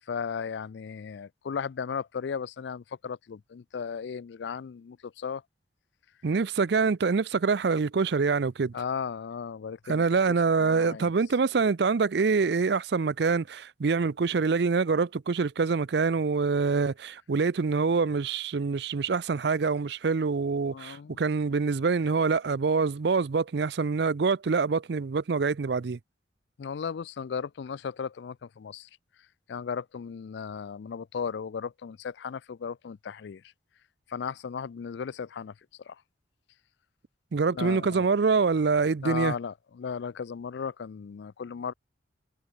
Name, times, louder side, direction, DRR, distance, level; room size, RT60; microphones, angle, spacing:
voice 1, 0.1-5.4 8.7-11.1 20.7-21.2 26.6-28.9 29.5-33.4 34.1-35.5 35.9-36.0 37.5-38.1 39.0-41.7, left 6 dB, 65° left, 0.4 m, -36 dB
voice 2, 6.2-8.7 9.9-26.0 37.3-39.3, right 4 dB, 60° right, 0.5 m, -25 dB
head